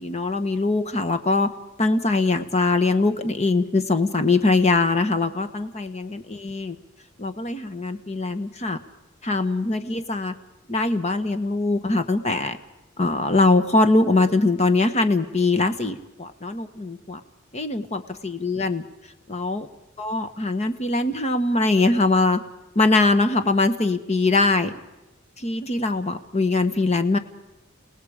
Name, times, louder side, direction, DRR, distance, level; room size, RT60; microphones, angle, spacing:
voice 1, 0.0-1.5 1.8-6.8 7.2-8.8 9.2-10.3 10.7-12.6 13.0-17.2 17.5-18.8 19.3-19.7 20.0-22.4 22.7-24.7 25.4-27.2, left 3 dB, 35° left, 10 dB, 1.3 m, -22 dB
30.0 x 18.5 x 5.1 m, 0.98 s
head